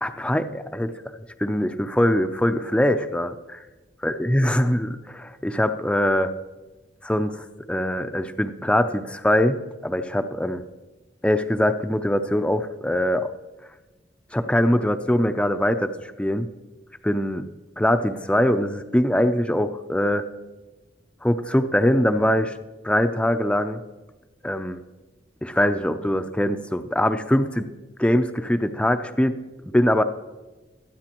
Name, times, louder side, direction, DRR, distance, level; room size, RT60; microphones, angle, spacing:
voice 1, 0.0-0.9 1.4-3.6 4.0-6.3 7.0-10.6 11.2-13.3 14.3-16.5 17.0-17.5 17.8-20.2 21.2-22.5 22.8-23.8 24.4-24.8 25.4-27.7 28.0-29.4 29.7-30.0, left 1 dB, 5° left, 8 dB, 0.5 m, -22 dB
22.5 x 9.3 x 3.0 m, 1.1 s
head